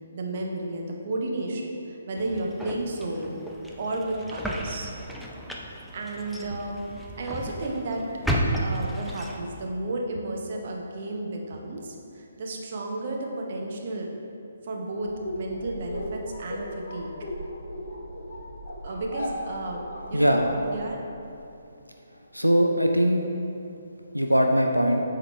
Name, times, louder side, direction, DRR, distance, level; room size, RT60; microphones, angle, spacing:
voice 1, 0.1-3.4 3.8-4.9 5.7-6.8 7.2-8.0 8.6-14.1 14.6-15.1 15.3-17.1 18.8-19.8 20.1-21.0, right 2 dB, 45° right, 0 dB, 0.7 m, -32 dB
sound 1, 2.2-9.7, right 1 dB, ahead, 0.4 m, -33 dB
sound 2, 15.0-21.3, equal, 55° left, 1.0 m, -37 dB
voice 2, 20.1-20.5 22.3-23.2 24.1-25.0, equal, 90° right, 3 dB, 0.4 m, -21 dB
7.6 x 3.9 x 3.2 m, 2.7 s
figure-of-eight pair, 135°, 0 cm